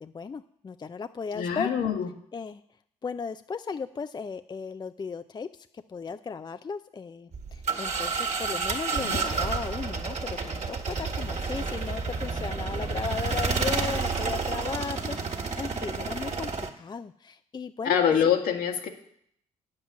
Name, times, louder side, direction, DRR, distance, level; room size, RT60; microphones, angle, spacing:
voice 1, 0.0-1.7 2.3-2.6 3.0-18.3, left 5 dB, 30° left, 11 dB, 0.5 m, -36 dB
voice 2, 1.3-2.1 9.0-9.2 17.8-18.9, left 8 dB, 70° left, 4 dB, 1.8 m, -25 dB
sound 1, 7.3-16.7, right 4 dB, 50° right, 1.8 m, -30 dB
9.0 x 7.5 x 7.1 m, 0.68 s
supercardioid pair, 60°, 16 cm